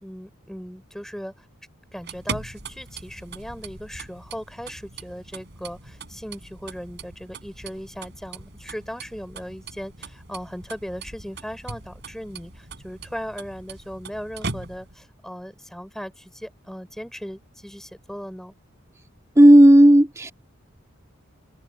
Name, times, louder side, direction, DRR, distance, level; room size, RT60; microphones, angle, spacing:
voice 1, 0.0-1.5 1.9-18.5, equal, ahead, 4.4 m, -37 dB
sound 1, 1.9-15.1, right 3 dB, 55° right, 5.5 m, -39 dB
voice 2, 19.4-20.3, right 1 dB, 15° right, 2.1 m, -11 dB
head